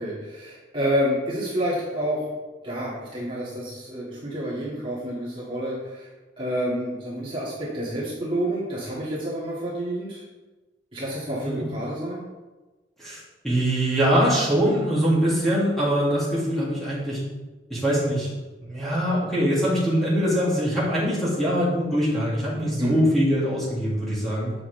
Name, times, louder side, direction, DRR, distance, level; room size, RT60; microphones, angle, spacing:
voice 1, 0.0-2.3 2.6-6.1 6.4-10.2 10.9-12.3 22.8-23.0, equal, 30° right, -8 dB, 2.0 m, -29 dB
voice 2, 13.0-17.2 17.7-18.3 18.6-24.5, equal, ahead, -10 dB, 2.4 m, -23 dB
8.5 x 6.0 x 3.3 m, 1.2 s
head